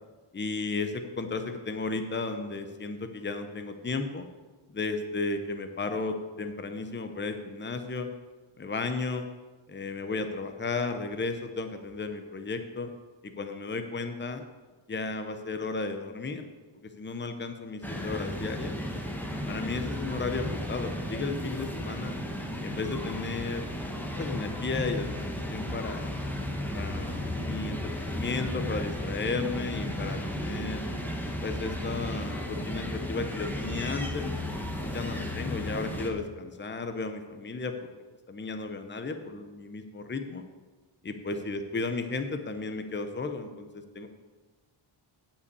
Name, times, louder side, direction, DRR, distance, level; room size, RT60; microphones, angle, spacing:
voice 1, 0.3-4.2 4.7-8.1 8.6-9.3 9.7-12.9 13.2-14.4 14.9-16.5 16.8-18.8 19.5-22.2 22.6-23.7 24.2-25.1 25.5-26.2 26.7-30.8 31.4-34.3 34.8-37.7 38.3-40.4 41.0-44.1, left 3 dB, 20° left, 7 dB, 0.7 m, -34 dB
sound 1, 17.8-36.1, left 1 dB, 5° left, 1.0 m, -34 dB
9.6 x 5.7 x 8.1 m, 1.3 s
wide cardioid pair, 180°, 50 cm